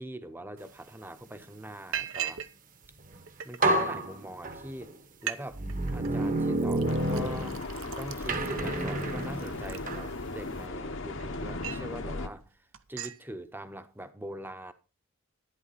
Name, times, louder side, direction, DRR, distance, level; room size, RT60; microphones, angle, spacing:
voice 1, 0.0-2.4 3.4-4.9 5.2-5.6 5.9-7.6 8.0-12.5 12.9-14.7, right 1 dB, 10° right, 0.8 m, -42 dB
Liquid, 0.8-0.9 1.2-1.4 1.9-2.5 2.8-3.7 4.4-4.5 4.8-4.9 5.1-5.4 5.7-6.1 6.6-10.4 10.9-11.9 12.3-12.5 12.7-13.2, right 9 dB, 70° right, 0.8 m, -40 dB
sound 1, 3.0-3.2 3.6-4.9 5.5-7.9 8.3-10.1, right 1 dB, 35° right, 1.1 m, -29 dB
sound 2, 6.8-12.3, left 2 dB, 60° left, 1.1 m, -37 dB
11.5 x 10.5 x 4.1 m
head